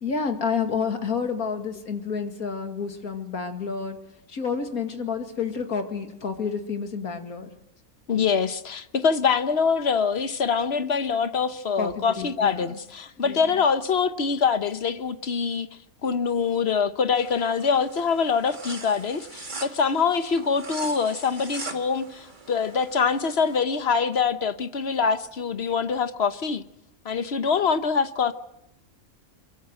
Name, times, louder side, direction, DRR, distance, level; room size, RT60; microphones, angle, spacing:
voice 1, 0.0-4.0 4.3-7.5 11.8-12.7 13.2-13.4, left 5 dB, 85° left, 2.6 m, -29 dB
voice 2, 8.1-15.7 16.0-26.6 27.0-28.3, left 5 dB, 50° left, 1.2 m, -24 dB
sound 1, 17.1-23.6, right 3 dB, 35° right, 1.9 m, -41 dB
23.5 x 23.0 x 7.8 m
omnidirectional pair, 1.5 m